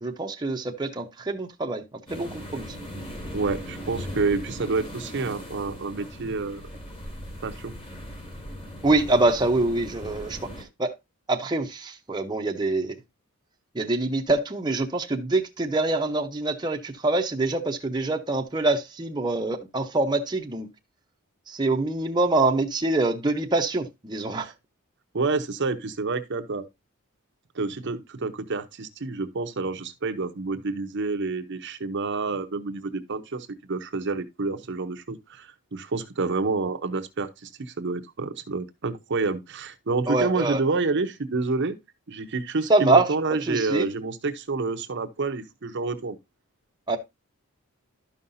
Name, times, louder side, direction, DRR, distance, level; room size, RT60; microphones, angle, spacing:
voice 1, 0.0-1.8 2.1-2.7 8.8-10.5 10.8-10.9 11.3-13.0 13.7-20.7 21.5-24.5 40.1-40.6 42.7-43.1 43.5-43.9 46.9-47.0, right 2 dB, 20° right, 0.7 m, -25 dB
sound 1, 2.1-10.6, equal, 25° left, 2.0 m, -38 dB
voice 2, 3.3-6.6 7.4-7.7 24.4-24.5 25.1-26.7 27.5-41.7 42.1-46.2, right 3 dB, 55° right, 0.7 m, -28 dB
12.0 x 5.5 x 2.6 m
head